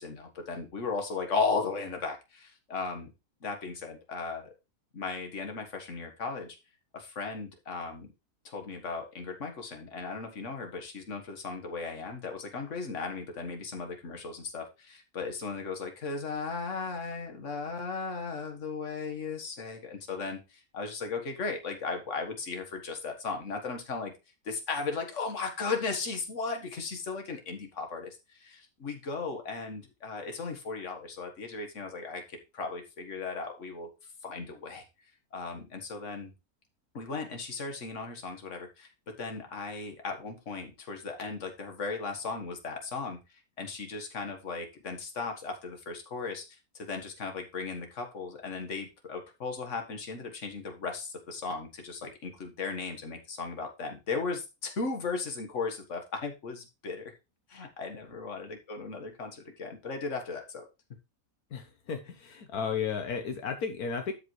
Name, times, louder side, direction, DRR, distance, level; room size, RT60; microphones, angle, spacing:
voice 1, 0.0-3.1 3.4-4.5 4.9-6.6 6.9-8.1 8.4-24.1 24.5-33.9 34.2-34.8 35.3-36.3 36.9-43.2 43.6-57.1 57.5-60.7, left 4 dB, 55° left, 4 dB, 1.9 m, -36 dB
voice 2, 61.5-64.1, left 6 dB, 75° left, 5 dB, 1.6 m, -34 dB
12.0 x 5.4 x 3.2 m, 0.26 s
omnidirectional pair, 1.6 m